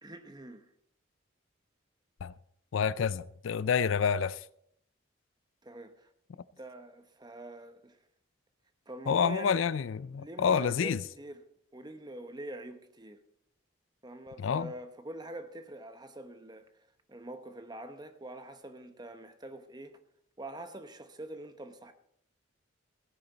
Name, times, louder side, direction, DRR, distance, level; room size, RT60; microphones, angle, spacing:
voice 1, 0.0-0.7 5.6-6.1 6.6-8.0 8.9-9.8 10.2-11.4 11.7-13.2 14.0-16.7 17.1-20.0 20.4-21.9, right 1 dB, 20° right, 0.8 m, -45 dB
voice 2, 2.7-4.4 9.1-11.0 14.4-14.7, left 6 dB, 75° left, 0.4 m, -28 dB
15.5 x 9.9 x 4.0 m
head